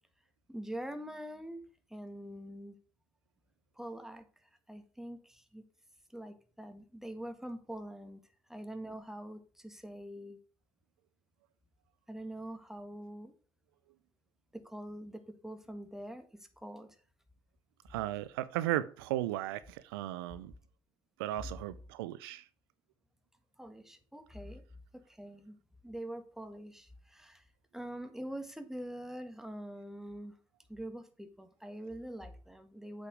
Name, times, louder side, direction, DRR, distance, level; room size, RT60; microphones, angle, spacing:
voice 1, 0.5-1.6 1.9-2.7 3.8-4.2 4.7-5.6 6.1-8.2 8.5-10.4 12.1-13.3 14.5-16.9 23.6-24.6 24.9-25.6 25.8-27.4 27.7-30.4 30.7-33.1, right 1 dB, 5° right, 1.7 m, -44 dB
voice 2, 17.9-20.5 21.2-22.5, right 14 dB, 85° right, 0.4 m, -35 dB
8.1 x 5.2 x 5.1 m
hypercardioid pair, 50°, 12 cm